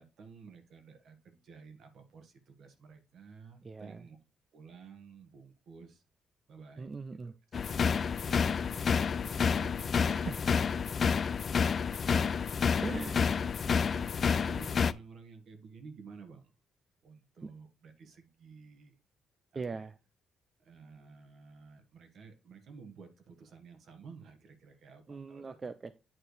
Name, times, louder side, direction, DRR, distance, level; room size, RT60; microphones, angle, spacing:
voice 1, 0.0-4.2 4.5-6.0 6.5-7.2 7.9-10.5 10.9-12.9 13.7-16.5 17.0-19.0 19.5-19.9 20.6-25.6, right 5 dB, 65° right, 1.5 m, -53 dB
voice 2, 3.6-4.0 6.8-7.3 10.0-10.6 12.8-13.3 17.4-17.5 19.5-20.0 25.1-26.0, right 4 dB, 35° right, 0.4 m, -40 dB
sound 1, 7.5-14.9, left 6 dB, 45° left, 0.3 m, -29 dB
8.9 x 4.4 x 3.3 m
cardioid pair, 90°, 0 cm